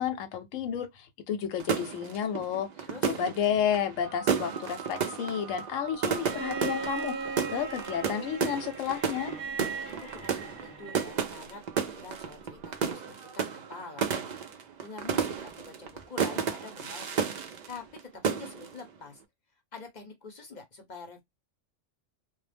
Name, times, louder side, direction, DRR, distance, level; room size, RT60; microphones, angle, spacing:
voice 1, 0.0-2.7 3.0-9.3, left 9 dB, 90° left, 1.0 m, -31 dB
sound 1, 1.6-18.0 18.2-18.8, right 7 dB, 80° right, 0.3 m, -32 dB
voice 2, 2.8-3.2 9.8-11.6 11.9-14.3 14.8-19.2 19.7-21.2, left 4 dB, 45° left, 0.6 m, -46 dB
sound 2, 4.0-8.5 11.4-14.5, right 5 dB, 60° right, 0.7 m, -46 dB
Bowed string instrument, 6.2-11.3 12.7-12.8, right 4 dB, 25° right, 0.7 m, -38 dB
2.2 x 2.1 x 3.2 m
omnidirectional pair, 1.3 m